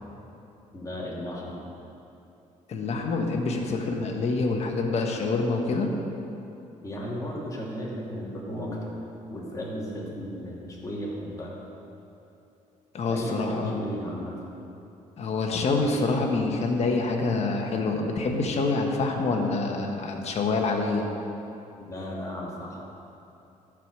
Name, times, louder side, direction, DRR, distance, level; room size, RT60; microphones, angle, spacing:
voice 1, 0.7-1.6 6.8-9.0 9.3-11.5 13.1-14.4 21.9-22.8, equal, 25° left, -4 dB, 2.3 m, -34 dB
voice 2, 2.7-5.9 12.9-13.8 15.2-21.1, left 3 dB, 55° left, 2 dB, 1.4 m, -26 dB
13.0 x 5.0 x 6.2 m, 2.8 s
cardioid pair, 95°, 13 cm